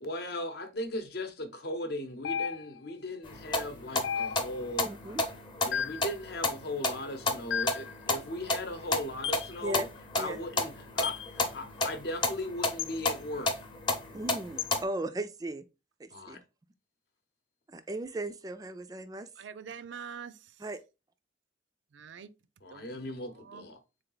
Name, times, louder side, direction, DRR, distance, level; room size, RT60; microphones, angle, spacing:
voice 1, 0.0-4.9 5.6-9.9 10.1-13.5 16.1-16.4 22.6-23.8, left 1 dB, 60° left, 0.8 m, -38 dB
sound 1, 2.2-2.9 4.0-4.7 5.7-6.1 7.5-7.9 9.2-9.5 11.0-11.3 12.8-13.0 14.6-14.8, left 8 dB, 85° left, 0.3 m, -34 dB
sound 2, 3.2-14.8, left 2 dB, 25° left, 0.7 m, -33 dB
voice 2, 4.8-5.2 9.6-9.9 10.2-10.4 14.1-15.6 16.0-16.4 17.7-19.3 20.6-20.8, right 1 dB, 20° right, 0.3 m, -37 dB
voice 3, 19.4-20.4 21.9-22.3 22.7-23.1 23.4-23.7, right 6 dB, 80° right, 0.4 m, -44 dB
3.9 x 3.4 x 3.8 m
head